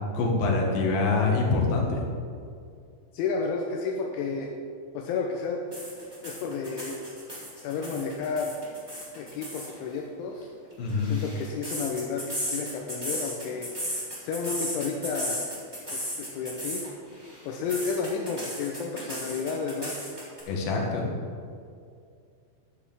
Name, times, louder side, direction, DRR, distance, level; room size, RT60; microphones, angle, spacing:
voice 1, 0.1-2.0 10.8-11.1 20.5-21.1, left 3 dB, 55° left, -1 dB, 3.1 m, -25 dB
voice 2, 3.1-4.5 4.9-5.6 6.2-7.0 7.6-8.5 9.2-10.5 11.0-13.7 14.2-15.4 15.9-16.9 17.4-19.9, left 5 dB, 80° left, 1 dB, 3.1 m, -31 dB
sound 1, 5.7-9.7 10.7-16.9 17.2-20.4, equal, 5° right, 2.7 m, -35 dB
12.5 x 6.9 x 7.2 m, 2.3 s
omnidirectional pair, 5.6 m